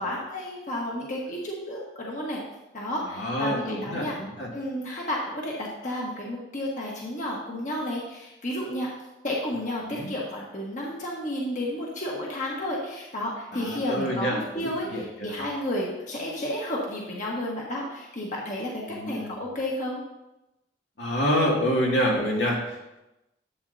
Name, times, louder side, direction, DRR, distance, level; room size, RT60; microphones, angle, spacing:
voice 1, 0.0-2.4 2.7-4.1 4.5-8.9 9.2-20.0, left 1 dB, 45° left, -3 dB, 1.5 m, -32 dB
voice 2, 3.0-4.5 9.8-10.1 13.5-15.3 18.9-19.3 21.0-23.0, equal, 85° left, -3 dB, 2.4 m, -27 dB
11.5 x 7.8 x 2.8 m, 0.95 s
head